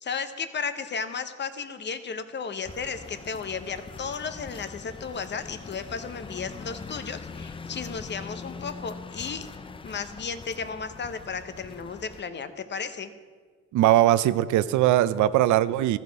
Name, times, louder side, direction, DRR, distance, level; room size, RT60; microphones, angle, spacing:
voice 1, 0.0-9.5 9.8-13.1, left 5 dB, 35° left, 10 dB, 0.7 m, -34 dB
sound 1, 2.6-12.2, left 4 dB, 20° left, 0.4 m, -42 dB
voice 2, 13.7-16.0, right 13 dB, 75° right, 16 dB, 0.5 m, -20 dB
14.0 x 5.1 x 4.6 m, 1.5 s
cardioid pair, 90°, 30 cm